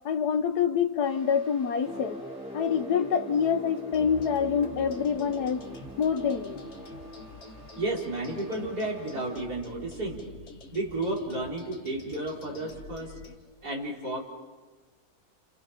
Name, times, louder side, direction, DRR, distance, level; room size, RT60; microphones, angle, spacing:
voice 1, 0.1-2.2 2.5-5.6 6.0-6.6, left 7 dB, 85° left, 1.6 m, -26 dB
sound 1, 1.0-9.4, right 2 dB, 45° right, 6.9 m, -50 dB
sound 2, 1.8-7.6, equal, 5° right, 0.6 m, -43 dB
sound 3, 3.9-13.4, left 3 dB, 50° left, 1.8 m, -47 dB
voice 2, 7.8-10.3 10.7-13.2 13.6-14.2, right 2 dB, 80° right, 5.0 m, -32 dB
29.5 x 29.0 x 5.8 m
omnidirectional pair, 1.6 m